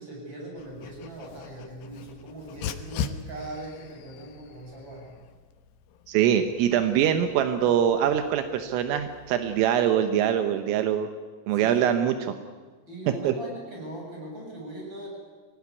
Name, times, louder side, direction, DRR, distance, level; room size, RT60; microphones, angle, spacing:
voice 1, 0.0-5.1 11.5-11.9 12.9-15.1, right 1 dB, 20° right, -1 dB, 7.8 m, -40 dB
Dog, 0.6-9.7, left 7 dB, 80° left, 2.0 m, -41 dB
voice 2, 6.1-11.1 11.5-12.3 13.2-13.3, right 9 dB, 80° right, 8 dB, 3.6 m, -23 dB
25.0 x 18.0 x 9.6 m, 1.4 s
omnidirectional pair, 5.8 m